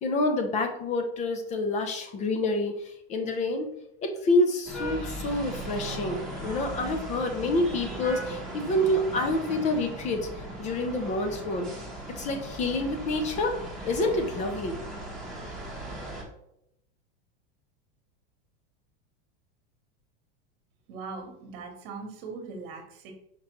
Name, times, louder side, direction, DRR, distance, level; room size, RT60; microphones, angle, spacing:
voice 1, 0.0-3.7 4.0-10.3 10.6-11.7 12.2-13.5 13.8-14.8, left 2 dB, 25° left, 6 dB, 0.5 m, -27 dB
sound 1, 4.7-16.2, right 1 dB, ahead, 0.9 m, -38 dB
voice 2, 20.9-23.1, right 4 dB, 55° right, 4 dB, 1.2 m, -40 dB
5.0 x 3.1 x 3.0 m, 0.77 s
supercardioid pair, 145°, 31 cm